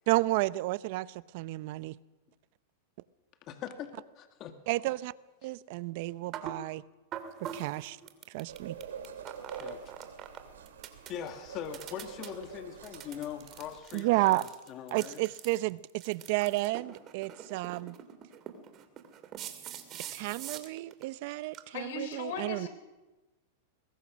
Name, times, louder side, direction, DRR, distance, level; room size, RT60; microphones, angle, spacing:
voice 1, 0.1-2.0 4.7-5.1 5.4-6.8 7.4-8.0 8.3-8.8 13.9-14.5 14.9-18.0 20.1-22.7, right 19 dB, 55° right, 0.7 m, -31 dB
voice 2, 3.5-4.6 9.6-9.8 11.1-15.2, left 9 dB, 40° left, 2.1 m, -41 dB
sound 1, 6.3-6.6 7.1-10.4 10.7-11.3 11.7-12.3 12.8-21.0 21.3-21.6 22.1-22.2, right 9 dB, 35° right, 2.7 m, -44 dB
sound 2, 8.5-13.8, right 7 dB, 90° right, 3.4 m, -46 dB
voice 3, 21.7-22.7, left 5 dB, 70° left, 4.6 m, -38 dB
23.0 x 20.5 x 6.3 m
hypercardioid pair, 130°, 0 cm